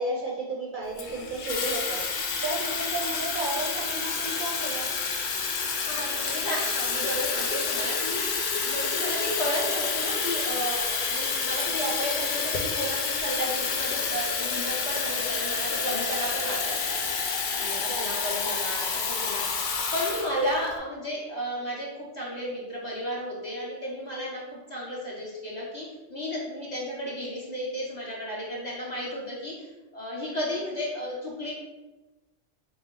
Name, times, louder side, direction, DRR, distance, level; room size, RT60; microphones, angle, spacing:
voice 1, 0.0-2.0 2.4-4.9 17.9-18.3, right 2 dB, 55° right, -3 dB, 0.6 m, -33 dB
Water tap faucet / Fill (with liquid), 1.0-20.7, left 5 dB, 65° left, 0.5 m, -29 dB
voice 2, 5.7-17.0 17.5-24.4 24.7-31.5, equal, 40° left, -5 dB, 0.8 m, -33 dB
4.2 x 2.2 x 3.7 m, 1.1 s
omnidirectional pair, 1.3 m